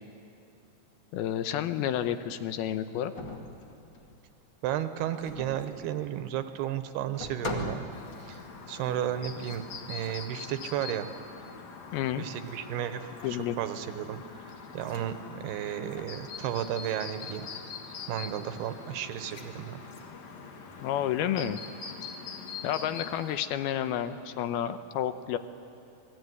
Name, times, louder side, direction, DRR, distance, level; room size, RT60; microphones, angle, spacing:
voice 1, 1.1-3.1 11.9-12.3 13.2-13.6 20.8-21.6 22.6-25.4, left 10 dB, 80° left, 10 dB, 2.7 m, -30 dB
sound 1, 3.1-4.3 5.1-5.9 6.6-6.7 7.1-8.6 9.4-10.4 11.4-11.6 12.3-12.7 13.0-13.6 14.7-15.1 15.7-16.4 16.8-17.0 17.2-17.6 19.2-19.5 19.8-20.2, left 1 dB, 35° left, 2.2 m, -42 dB
voice 2, 4.6-7.9 8.2-8.4 8.7-9.6 9.9-11.1 12.2-14.2 14.7-17.5 18.1-19.8, right 10 dB, 80° right, 10 dB, 3.1 m, -33 dB
Chirp tweet, 7.9-23.4, left 5 dB, 50° left, 2.5 m, -44 dB
28.0 x 20.5 x 9.6 m, 2.7 s
omnidirectional pair, 4.6 m